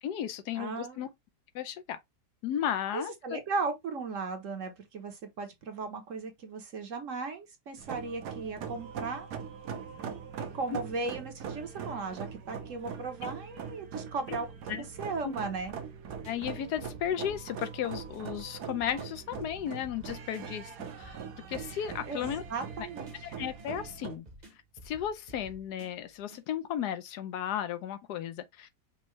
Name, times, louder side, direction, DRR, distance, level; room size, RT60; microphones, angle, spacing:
voice 1, 0.0-1.1 1.5-2.0 2.4-3.4 14.7-14.8 15.2-15.3 16.2-20.7 21.0-21.2 21.5-22.4 22.8-22.9 23.2-24.2 24.8-28.8, left 10 dB, 75° left, 1.2 m, -34 dB
voice 2, 0.6-1.0 2.9-9.3 10.5-14.5 15.0-15.7 22.0-23.1, right 4 dB, 55° right, 1.1 m, -36 dB
sound 1, 7.8-24.2, right 7 dB, 75° right, 1.4 m, -42 dB
sound 2, 15.6-26.4, right 1 dB, 30° right, 0.9 m, -53 dB
5.5 x 2.7 x 3.0 m
omnidirectional pair, 1.8 m